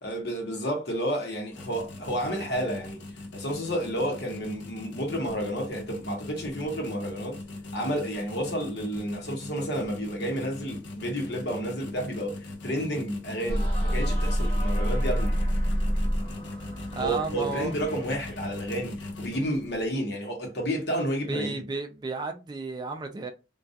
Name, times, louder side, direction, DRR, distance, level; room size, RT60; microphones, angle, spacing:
voice 1, 0.0-3.0 3.3-7.4 7.7-15.3 17.0-21.6, equal, 65° left, 0.9 m, -31 dB
sound 1, 1.5-19.9, left 2 dB, 85° left, 0.6 m, -40 dB
sound 2, 13.5-19.0, equal, 30° left, 0.9 m, -28 dB
voice 2, 16.9-17.7 21.3-23.3, right 3 dB, 25° right, 0.3 m, -33 dB
2.3 x 2.3 x 2.6 m
head